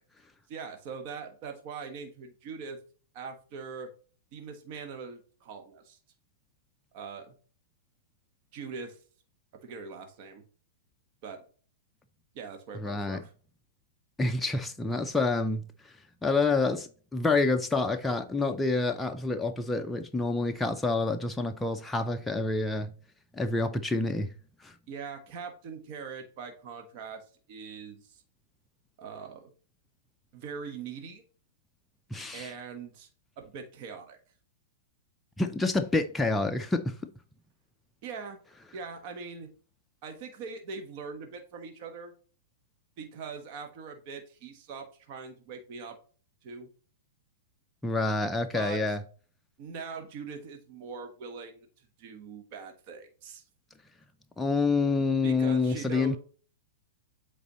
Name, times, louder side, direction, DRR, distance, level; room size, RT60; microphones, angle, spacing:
voice 1, 0.5-2.8 3.1-3.9 4.3-6.0 6.9-7.3 8.5-9.0 9.6-10.4 11.2-11.4 12.3-13.3 14.5-14.6 24.9-27.2 27.5-28.2 29.0-29.5 30.3-31.2 32.3-33.1 33.4-34.2 38.0-38.4 38.7-39.5 40.0-42.1 43.0-46.0 46.4-46.7 48.5-48.8 49.6-53.4 55.2-56.2, right 5 dB, 50° right, 1.2 m, -42 dB
voice 2, 12.8-13.2 14.2-15.9 16.2-22.9 23.3-24.3 24.6-24.7 32.1-32.5 35.4-37.1 47.8-49.0 54.4-56.2, left 3 dB, 5° left, 0.5 m, -28 dB
8.1 x 4.0 x 2.9 m
hypercardioid pair, 130°, 0 cm